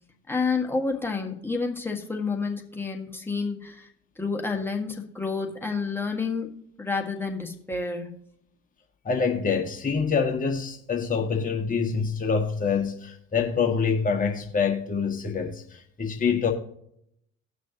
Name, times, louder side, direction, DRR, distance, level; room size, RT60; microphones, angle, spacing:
voice 1, 0.3-3.9 4.2-8.2, left 4 dB, 5° left, 1.7 m, -29 dB
voice 2, 9.0-16.5, left 5 dB, 20° left, 1.5 m, -26 dB
18.0 x 6.2 x 2.8 m
hypercardioid pair, 60°, 37 cm